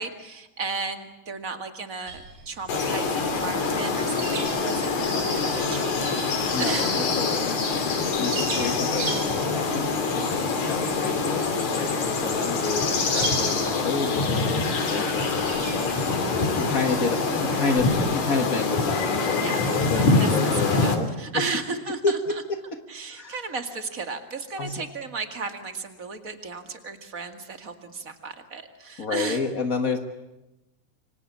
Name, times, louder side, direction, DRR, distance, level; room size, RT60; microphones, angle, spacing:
voice 1, 0.0-7.1 19.4-19.7 20.0-20.5 20.8-22.2 22.9-29.4, right 4 dB, 30° right, 7 dB, 1.9 m, -34 dB
sound 1, 2.1-18.1, right 4 dB, 75° right, 5.3 m, -40 dB
sound 2, 2.7-21.0, left 4 dB, 55° left, 4.1 m, -25 dB
voice 2, 6.5-7.8 8.2-16.0 16.6-21.5 21.7-22.8 23.1-23.4 24.6-24.8 29.0-30.0, left 4 dB, 85° left, 7 dB, 0.7 m, -30 dB
26.5 x 25.0 x 8.6 m, 0.97 s
omnidirectional pair, 4.0 m